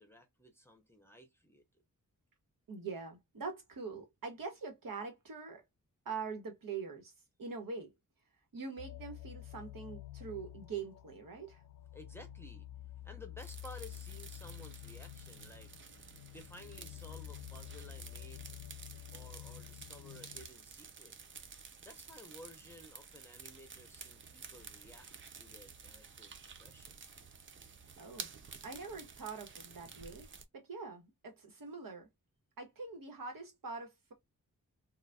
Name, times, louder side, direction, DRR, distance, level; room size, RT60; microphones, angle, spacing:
voice 1, 0.0-1.6 11.9-12.7 13.0-15.7 16.3-18.6 19.1-21.1 21.8-27.0, left 1 dB, 5° left, 0.7 m, -55 dB
voice 2, 2.7-5.6 6.0-7.1 7.4-7.9 8.5-11.6 28.0-28.3 28.6-32.1 32.6-34.1, right 5 dB, 75° right, 1.4 m, -44 dB
sound 1, 8.8-20.5, left 14 dB, 70° left, 0.5 m, -49 dB
sound 2, 13.4-30.4, right 5 dB, 35° right, 0.4 m, -52 dB
3.9 x 2.4 x 2.2 m
wide cardioid pair, 165°, 33 cm